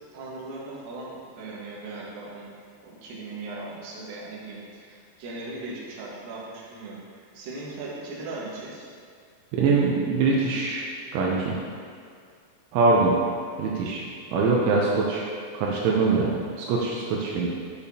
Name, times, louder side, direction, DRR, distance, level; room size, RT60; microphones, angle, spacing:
voice 1, 0.1-2.5 2.8-8.9, right 2 dB, 65° right, -6 dB, 2.5 m, -38 dB
voice 2, 9.6-10.8 11.1-11.6 12.7-13.2 13.6-14.0 14.3-15.3 15.5-16.3 16.7-17.5, right 4 dB, 80° right, -3 dB, 3.0 m, -23 dB
10.0 x 7.0 x 2.8 m, 2.2 s
omnidirectional pair, 5.8 m